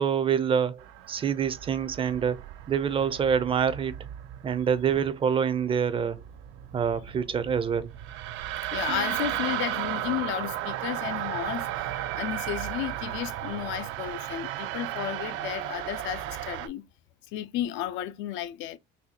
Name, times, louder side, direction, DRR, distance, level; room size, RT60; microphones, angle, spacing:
voice 1, 0.0-2.4 2.7-3.9 4.4-6.2 6.7-7.9, right 7 dB, 30° right, 0.4 m, -26 dB
sound 1, 0.8-16.7, right 13 dB, 85° right, 0.5 m, -35 dB
voice 2, 8.7-16.8 17.3-18.8, left 12 dB, 80° left, 0.5 m, -33 dB
Plucked string instrument, 8.9-11.6, right 10 dB, 70° right, 0.9 m, -46 dB
4.0 x 2.3 x 2.7 m
cardioid pair, 130°, 19 cm